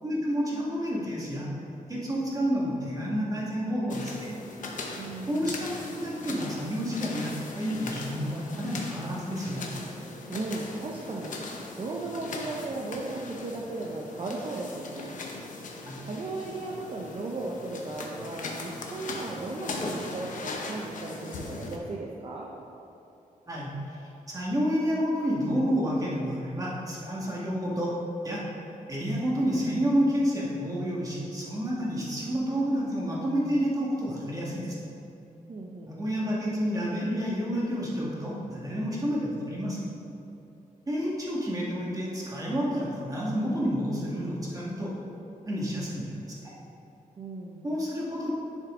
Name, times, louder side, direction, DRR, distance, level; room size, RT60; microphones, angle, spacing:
voice 1, 0.0-1.5 1.9-4.3 5.3-9.6 15.9-16.0 23.5-24.0 24.3-27.9 28.2-28.5 28.9-34.8 35.9-39.8 40.9-45.0 45.5-46.1 46.4-46.5 47.6-48.3, equal, 25° right, -5 dB, 1.9 m, -29 dB
sound 1, 3.9-21.8, left 3 dB, 65° left, 1.0 m, -39 dB
voice 2, 5.0-5.6 10.3-11.4 11.8-15.2 16.0-22.5 35.5-36.0 47.2-47.7, right 2 dB, 40° right, -2 dB, 0.8 m, -36 dB
10.5 x 6.4 x 3.8 m, 2.8 s
wide cardioid pair, 145°, 14 cm